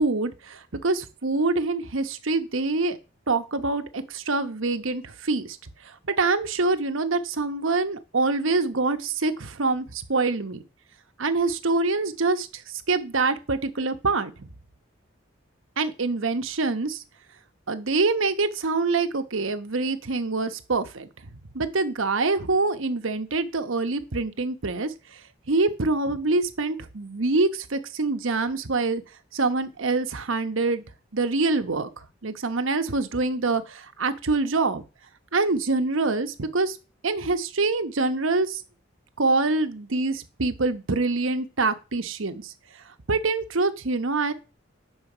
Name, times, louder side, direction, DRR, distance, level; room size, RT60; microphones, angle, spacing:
voice 1, 0.0-3.0 3.3-5.6 5.8-10.6 11.2-12.6 12.9-14.5 15.8-17.0 17.7-21.1 21.5-24.9 25.5-29.0 29.3-30.8 31.1-34.8 35.3-36.8 37.0-38.6 39.2-42.5 43.1-44.3, right 3 dB, 85° right, 8 dB, 1.1 m, -25 dB
9.6 x 6.4 x 5.0 m, 0.31 s
head